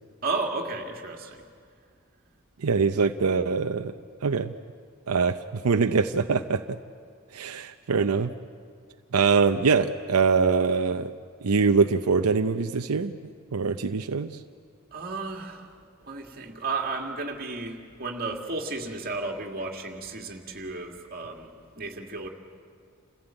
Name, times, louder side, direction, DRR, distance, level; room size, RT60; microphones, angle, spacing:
voice 1, 0.2-1.4 14.9-15.7 16.0-22.3, right 3 dB, 45° right, 2 dB, 2.2 m, -33 dB
voice 2, 2.6-3.9 4.2-4.5 5.1-6.8 7.3-8.3 9.1-11.1 11.4-13.2 13.5-14.4, right 5 dB, 90° right, 8 dB, 0.6 m, -23 dB
28.0 x 15.0 x 8.9 m, 2.1 s
head